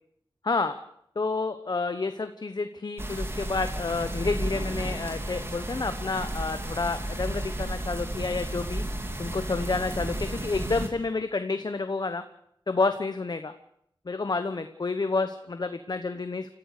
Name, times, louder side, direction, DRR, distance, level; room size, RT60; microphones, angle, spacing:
voice 1, 0.4-0.8 1.2-8.8 9.2-12.2 12.7-13.5 14.1-16.5, left 3 dB, 50° left, 9 dB, 1.1 m, -29 dB
sound 1, 3.0-10.9, right 1 dB, 30° right, 2.9 m, -33 dB
29.0 x 14.5 x 6.7 m, 0.72 s
wide cardioid pair, 80°, 9 cm